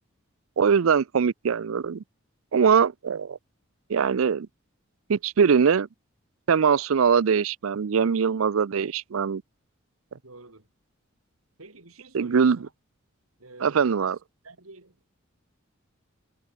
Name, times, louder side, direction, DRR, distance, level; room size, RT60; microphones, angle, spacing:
voice 1, 0.6-2.0 2.5-3.4 3.9-4.5 5.1-5.9 6.5-9.4 12.1-12.6 13.6-14.2, right 6 dB, 70° right, 0.5 m, -22 dB
voice 2, 10.2-10.7 11.6-12.7 13.4-14.1 14.4-15.2, right 2 dB, 90° right, 3.6 m, -48 dB
head